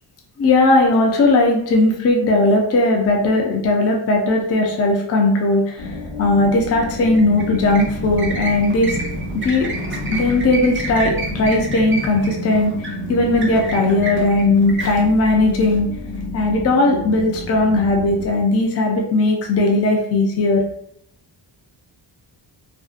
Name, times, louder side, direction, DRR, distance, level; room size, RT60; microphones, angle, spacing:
voice 1, 0.4-9.0 9.3-9.7 10.1-15.9 16.3-20.6, left 2 dB, 35° left, 1 dB, 0.4 m, -17 dB
sound 1, 5.8-18.3, left 1 dB, 65° left, 0.9 m, -31 dB
sound 2, 6.9-16.2, right 2 dB, 30° right, 0.4 m, -31 dB
2.8 x 2.6 x 2.4 m, 0.72 s
wide cardioid pair, 180°, 46 cm